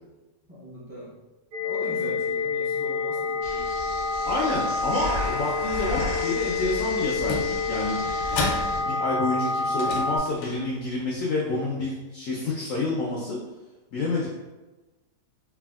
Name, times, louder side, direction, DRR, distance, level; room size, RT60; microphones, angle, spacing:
voice 1, 0.6-1.1 1.6-3.7 8.7-9.2, equal, 25° right, -10 dB, 0.7 m, -40 dB
sound 1, 1.5-10.2, left 4 dB, 70° right, 1.1 m, -28 dB
sound 2, 3.4-8.8, left 1 dB, 50° right, 1.4 m, -35 dB
voice 2, 4.3-8.0 8.8-13.4 13.9-14.3, left 2 dB, 70° left, -4 dB, 0.7 m, -28 dB
sound 3, 5.8-6.6 7.1-9.2 9.7-11.0, left 3 dB, 90° left, 1.3 m, -34 dB
3.4 x 2.3 x 2.3 m, 1.1 s
omnidirectional pair, 1.9 m